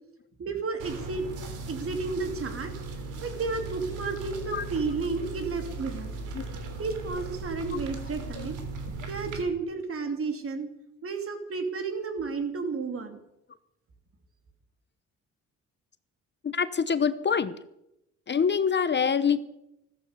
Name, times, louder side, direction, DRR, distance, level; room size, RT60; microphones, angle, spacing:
voice 1, 0.4-1.3 1.7-2.7 3.2-6.1 6.8-8.6 9.1-10.7 11.0-13.2, right 4 dB, 45° right, 6 dB, 3.2 m, -32 dB
sound 1, 0.8-9.4, right 3 dB, 90° right, 3.3 m, -38 dB
voice 2, 16.4-17.6 18.3-19.5, left 6 dB, 35° left, 14 dB, 0.9 m, -25 dB
15.0 x 14.0 x 6.8 m, 0.84 s
cardioid pair, 90°, 30 cm